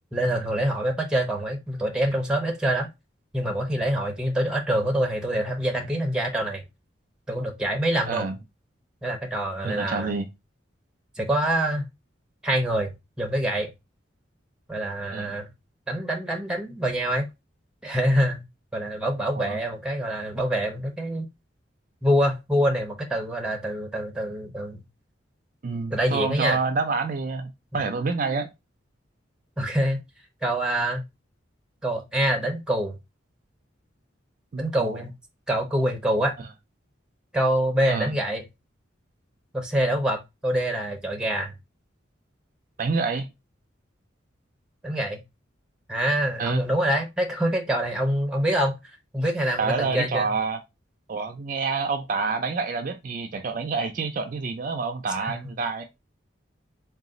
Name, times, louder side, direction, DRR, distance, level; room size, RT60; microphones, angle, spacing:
voice 1, 0.1-2.9 3.3-6.6 7.3-8.3 9.0-10.1 11.2-11.9 12.4-12.9 13.2-13.7 14.7-15.5 15.9-17.3 17.8-18.4 18.7-21.3 22.0-24.8 25.9-26.6 27.7-27.8 29.6-30.0 30.4-31.0 31.8-33.0 34.6-35.1 35.5-36.4 37.3-38.4 39.5-41.5 44.8-45.2 45.9-48.8 49.1-50.3 55.2-55.3, right 1 dB, 5° right, 0.8 m, -25 dB
voice 2, 9.6-10.3 15.1-15.3 19.4-19.6 25.6-28.5 34.5-35.0 37.9-38.1 42.8-43.3 46.4-46.6 49.6-50.6 51.1-55.8, right 4 dB, 45° right, 0.4 m, -28 dB
4.0 x 2.3 x 3.7 m
head